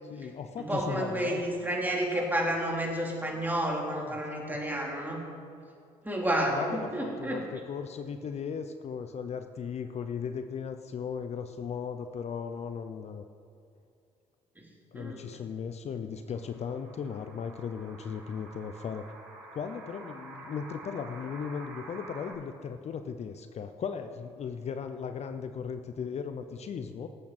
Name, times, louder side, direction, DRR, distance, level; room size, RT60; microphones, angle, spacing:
voice 1, 0.0-1.4 4.5-4.6 6.5-13.3 14.9-19.1 19.5-27.1, left 6 dB, 50° left, 9 dB, 0.7 m, -37 dB
voice 2, 0.6-5.2 6.0-7.4 14.6-14.7 14.9-15.2, right 1 dB, 10° right, -2 dB, 3.6 m, -30 dB
sound 1, 16.3-22.3, right 2 dB, 75° right, 3.5 m, -48 dB
18.5 x 8.4 x 4.4 m, 2.5 s
hypercardioid pair, 60°, 14 cm